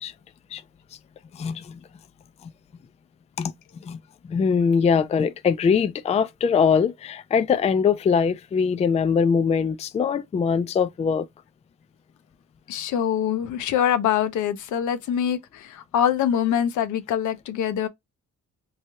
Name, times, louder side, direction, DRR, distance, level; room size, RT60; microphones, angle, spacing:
voice 1, 1.3-1.8 3.4-3.5 3.8-4.0 4.3-11.3, left 6 dB, 25° left, 0.3 m, -22 dB
voice 2, 12.7-17.9, left 9 dB, 75° left, 0.7 m, -24 dB
3.2 x 2.3 x 2.7 m
cardioid pair, 90°, 30 cm